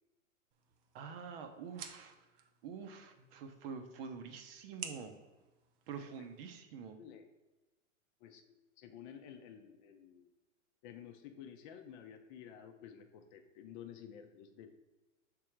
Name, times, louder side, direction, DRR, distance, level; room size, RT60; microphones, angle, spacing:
sound 1, 0.5-6.5, right 7 dB, 25° right, 0.4 m, -54 dB
voice 1, 0.9-2.2 2.6-5.1 5.9-7.0, right 6 dB, 50° right, 7 dB, 0.8 m, -46 dB
voice 2, 8.2-10.2 10.8-14.7, left 9 dB, 40° left, 6 dB, 0.6 m, -52 dB
6.0 x 3.8 x 4.5 m, 1.1 s
hypercardioid pair, 125°, 38 cm